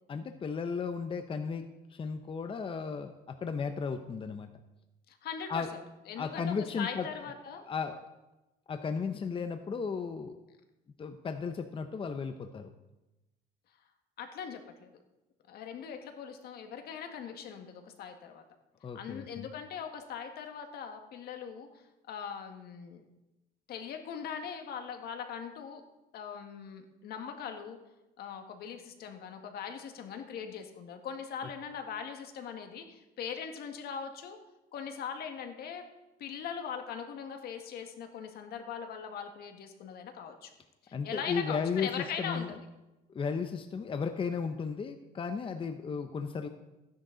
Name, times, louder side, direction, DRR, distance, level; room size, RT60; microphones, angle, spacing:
voice 1, 0.1-1.6 1.9-4.5 5.5-5.7 6.2-7.1 7.7-8.0 8.7-10.4 11.0-12.7 18.8-19.5 40.9-41.9 42.2-42.5 43.1-46.5, left 5 dB, 30° left, 7 dB, 0.8 m, -35 dB
voice 2, 5.1-7.7 14.2-14.9 15.5-18.4 18.9-21.7 22.1-23.0 23.7-25.8 26.1-27.8 28.2-34.4 34.7-35.8 36.2-40.5 40.8-42.6, left 7 dB, 70° left, 5 dB, 1.7 m, -41 dB
15.5 x 10.5 x 3.9 m, 0.98 s
cardioid pair, 110°, 17 cm